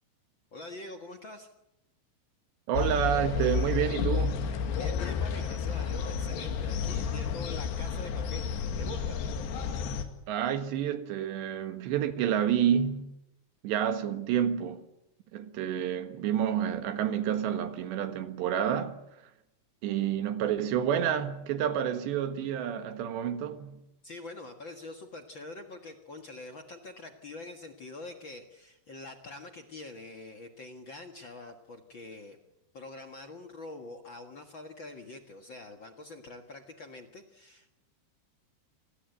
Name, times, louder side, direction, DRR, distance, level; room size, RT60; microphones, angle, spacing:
voice 1, 0.5-1.5 4.8-8.5 8.8-9.2 24.0-32.4 32.7-37.7, left 2 dB, 60° left, 1.3 m, -45 dB
sound 1, 2.7-10.0, left 6 dB, 80° left, 4.2 m, -31 dB
voice 2, 2.7-4.5 10.3-13.1 13.6-14.8 15.3-19.0 19.8-23.8, right 9 dB, 85° right, 3.7 m, -29 dB
27.5 x 21.5 x 8.1 m
omnidirectional pair, 4.9 m